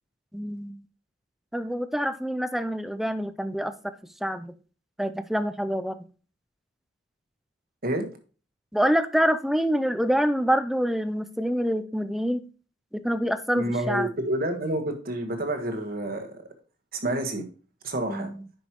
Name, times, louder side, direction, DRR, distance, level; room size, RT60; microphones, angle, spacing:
voice 1, 0.3-0.8 1.5-3.9 4.2-4.5 5.0-6.0 8.7-12.5 12.9-14.1 18.1-18.4, equal, ahead, 12 dB, 0.5 m, -26 dB
voice 2, 13.5-16.5 16.9-17.5 17.8-18.3, right 1 dB, 55° right, 6 dB, 1.4 m, -29 dB
10.5 x 5.3 x 3.0 m, 0.37 s
head